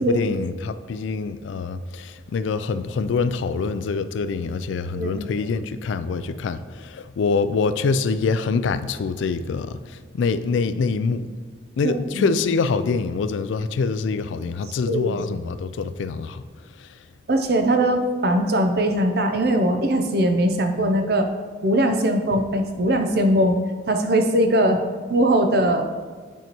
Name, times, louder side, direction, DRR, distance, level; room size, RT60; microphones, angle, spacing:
voice 1, 0.0-11.3 11.8-16.4 16.7-17.0, left 4 dB, 75° left, 0.3 m, -25 dB
voice 2, 4.9-5.3 11.8-12.3 14.9-15.2 17.3-21.3 21.6-23.6 23.9-24.8 25.1-25.8, right 1 dB, 55° right, 0.6 m, -20 dB
9.2 x 4.6 x 3.0 m
head